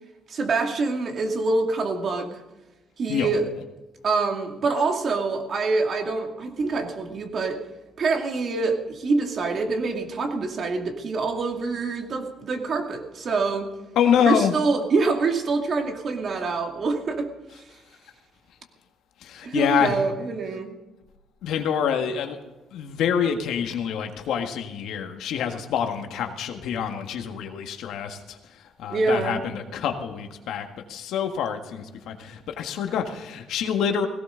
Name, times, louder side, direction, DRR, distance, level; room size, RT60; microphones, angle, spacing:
voice 1, 0.3-2.4 3.0-3.5 4.0-7.6 8.0-13.7 14.2-17.3 19.4-20.8 28.9-29.4, right 3 dB, 55° right, 3 dB, 2.4 m, -25 dB
voice 2, 13.9-14.5 19.2-20.0 21.4-22.4 22.7-28.2 28.8-34.1, left 8 dB, 85° left, 5 dB, 1.6 m, -26 dB
17.5 x 17.0 x 3.9 m, 1.1 s
cardioid pair, 90°, 0 cm